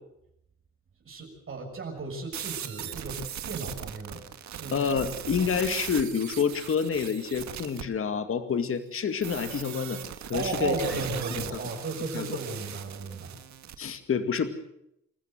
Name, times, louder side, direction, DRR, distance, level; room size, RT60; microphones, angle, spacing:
voice 1, 1.0-4.8 10.3-13.4, right 3 dB, 45° right, 1 dB, 6.6 m, -35 dB
sound 1, 2.3-7.8 9.2-13.8, right 10 dB, 65° right, 1.8 m, -39 dB
voice 2, 4.7-10.0 10.3-10.7 12.1-12.4 13.8-14.5, left 6 dB, 45° left, 8 dB, 2.2 m, -28 dB
27.5 x 14.0 x 7.9 m, 0.78 s
cardioid pair, 90°, 30 cm